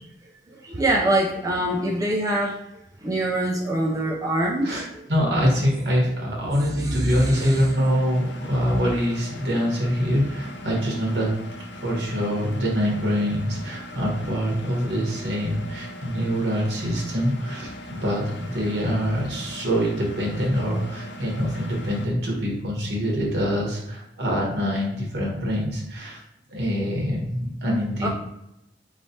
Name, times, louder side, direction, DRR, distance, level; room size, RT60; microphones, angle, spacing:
voice 1, 0.5-2.6 3.0-4.8 6.5-7.7 28.0-28.1, right 1 dB, 20° right, -2 dB, 0.4 m, -24 dB
voice 2, 5.1-11.3 11.8-26.2 26.5-28.1, equal, 70° right, -2 dB, 1.3 m, -24 dB
Engine, 7.1-22.0, left 1 dB, 75° left, 0.5 m, -39 dB
4.5 x 3.2 x 2.7 m, 0.86 s
head